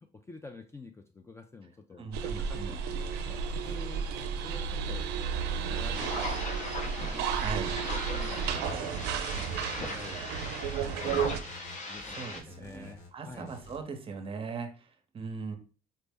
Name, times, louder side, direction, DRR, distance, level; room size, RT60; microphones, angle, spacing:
voice 1, 0.0-3.4 3.6-4.1 4.4-5.1 5.7-6.8 7.6-8.4 8.7-10.3 10.9-11.3 11.8-13.5, left 3 dB, 15° left, 6 dB, 0.3 m, -49 dB
voice 2, 2.0-2.8 7.3-7.8 12.1-15.6, right 4 dB, 35° right, 6 dB, 0.7 m, -40 dB
sound 1, 2.1-11.4, right 7 dB, 90° right, 0.4 m, -33 dB
sound 2, 3.1-13.8, left 1 dB, 80° left, 1.2 m, -51 dB
sound 3, 5.7-12.4, left 2 dB, 45° left, 0.8 m, -39 dB
4.3 x 2.1 x 3.4 m, 0.36 s
cardioid pair, 110°, 17 cm